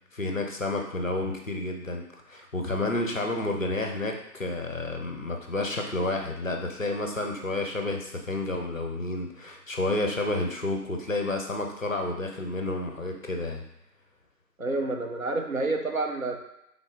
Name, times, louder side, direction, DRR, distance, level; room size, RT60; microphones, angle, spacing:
voice 1, 0.1-13.6, left 2 dB, 50° left, 2 dB, 0.7 m, -30 dB
voice 2, 14.6-16.4, right 2 dB, 55° right, 3 dB, 0.7 m, -29 dB
3.7 x 3.7 x 3.5 m, 0.83 s
figure-of-eight pair, 160°, 50 cm